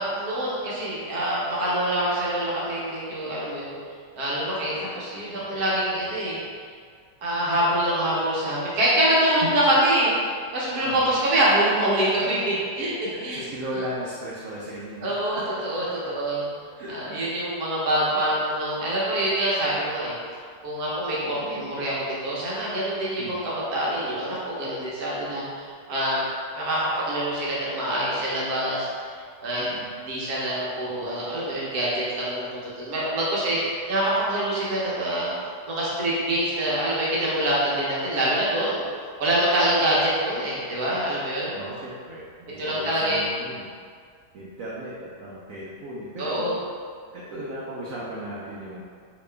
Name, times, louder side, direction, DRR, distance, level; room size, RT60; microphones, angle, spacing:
voice 1, 0.0-3.7 4.1-6.4 7.2-10.1 10.5-13.4 15.0-16.4 16.9-20.2 20.6-26.2 26.6-28.9 29.4-29.7 30.1-32.5 32.8-35.3 35.7-38.8 39.2-41.5 42.6-43.3 46.2-46.5, right 1 dB, 60° right, -7 dB, 1.2 m, -25 dB
voice 2, 5.3-6.1 9.4-9.5 10.8-11.0 13.1-15.4 16.8-17.3 23.2-23.4 29.6-29.9 41.5-42.2 42.5-43.7 44.3-44.9 45.2-46.5 47.1-48.8, right 1 dB, 80° right, -6 dB, 0.7 m, -36 dB
3.0 x 2.9 x 3.3 m, 2.1 s
omnidirectional pair, 2.0 m